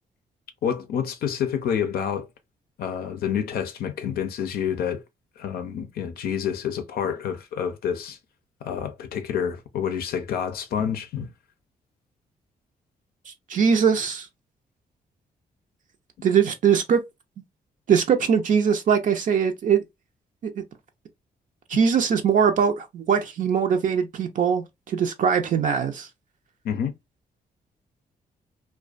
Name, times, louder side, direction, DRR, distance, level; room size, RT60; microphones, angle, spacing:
voice 1, 0.6-2.3 2.8-5.0 5.4-8.2 8.6-11.3 26.6-26.9, left 8 dB, 80° left, 0.5 m, -28 dB
voice 2, 13.3-14.3 16.2-17.0 17.9-19.8 20.4-20.6 21.7-26.1, right 7 dB, 55° right, 0.4 m, -21 dB
2.4 x 2.2 x 2.4 m
cardioid pair, 85°, 16 cm